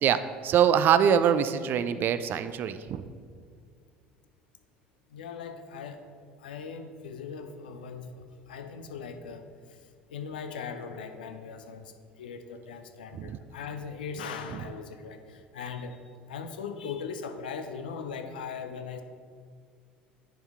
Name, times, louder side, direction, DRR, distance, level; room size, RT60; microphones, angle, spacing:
voice 1, 0.0-3.1 13.1-13.4, right 8 dB, 40° right, 12 dB, 0.3 m, -24 dB
voice 2, 5.1-6.1 6.4-16.0 16.3-19.0, left 6 dB, 70° left, 7 dB, 0.5 m, -39 dB
10.0 x 4.4 x 3.6 m, 2.1 s
figure-of-eight pair, 65°, 5 cm